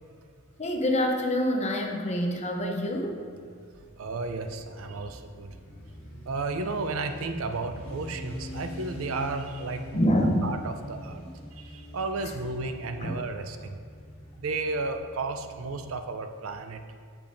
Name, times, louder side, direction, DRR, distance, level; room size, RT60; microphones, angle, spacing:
voice 1, 0.6-3.2 9.9-10.5 12.2-12.3 13.0-13.1, equal, 35° left, 2 dB, 0.7 m, -26 dB
Motorcycle, 3.1-14.7, left 1 dB, 90° left, 1.4 m, -46 dB
voice 2, 4.0-5.5 6.3-10.0 10.4-11.2 11.6-13.8 14.4-16.8, right 3 dB, 70° right, 7 dB, 0.5 m, -33 dB
sound 1, 5.6-15.8, equal, 10° right, 1.6 m, -47 dB
8.6 x 6.6 x 2.6 m, 2.2 s
head